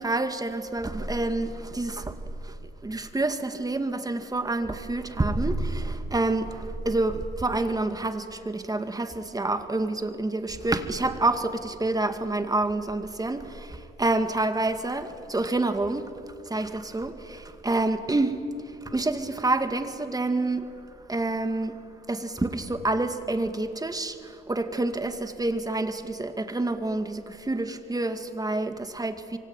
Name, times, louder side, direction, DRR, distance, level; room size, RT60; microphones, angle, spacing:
voice 1, 0.0-2.2 2.4-16.1 16.5-20.7 21.1-21.8 22.1-29.4, right 2 dB, 20° right, 2.2 m, -28 dB
26.5 x 24.0 x 9.1 m
cardioid pair, 90°, 20 cm